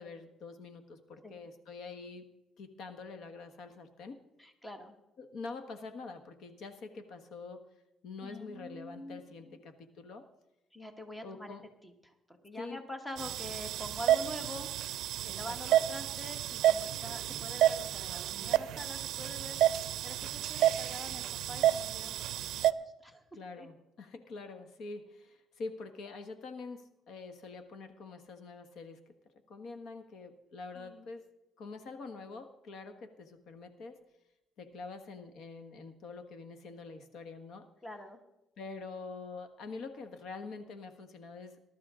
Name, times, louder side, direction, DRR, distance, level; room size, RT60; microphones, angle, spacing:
voice 1, 0.0-2.3 2.6-4.2 5.2-7.6 8.0-10.3 11.2-11.6 12.6-12.8 15.2-15.6 23.3-29.1 29.5-31.3 31.6-34.0 34.6-37.7 38.6-41.7, left 4 dB, 60° left, 8 dB, 1.3 m, -45 dB
voice 2, 4.4-5.0 8.2-9.6 10.7-11.5 11.8-14.7 15.3-19.6 20.0-23.2 23.6-23.7 30.7-31.1 37.8-38.2, left 1 dB, 10° left, 6 dB, 1.3 m, -45 dB
sound 1, 13.2-22.7, right 12 dB, 75° right, 0.5 m, -30 dB
19.5 x 12.5 x 3.7 m, 0.93 s
cardioid pair, 140°, 0 cm